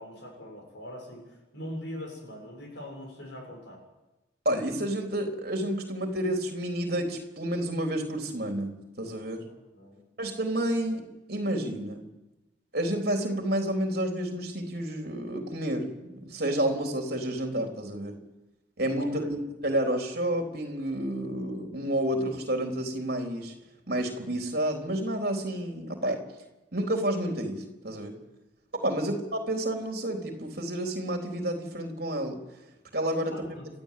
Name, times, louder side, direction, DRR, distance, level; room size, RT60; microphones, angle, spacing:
voice 1, 0.0-3.8 9.7-10.0 18.9-19.3 28.9-29.1 33.2-33.7, left 1 dB, 65° left, 2 dB, 6.8 m, -42 dB
voice 2, 4.5-9.4 10.2-12.0 12.7-18.2 18.8-23.5 23.9-26.2 26.7-28.1 28.8-32.4 32.9-33.6, right 1 dB, 50° right, 3 dB, 3.8 m, -30 dB
30.0 x 13.5 x 8.6 m, 1.0 s
head